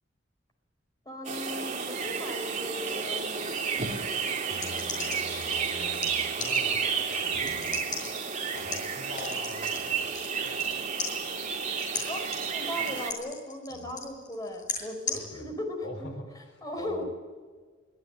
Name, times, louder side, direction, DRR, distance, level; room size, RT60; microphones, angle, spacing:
voice 1, 1.0-3.6 12.1-12.3 12.5-15.9 16.6-17.0, left 1 dB, 20° left, 4 dB, 4.7 m, -37 dB
sound 1, 1.2-13.1, right 6 dB, 40° right, 3.1 m, -31 dB
voice 2, 4.5-10.6 13.7-13.8 15.1-15.5 15.8-17.0, left 1 dB, 80° left, 4 dB, 5.3 m, -45 dB
sound 2, 4.5-10.7 11.0-15.2, left 4 dB, 40° left, 7.2 m, -37 dB
24.0 x 17.0 x 9.0 m, 1.5 s
head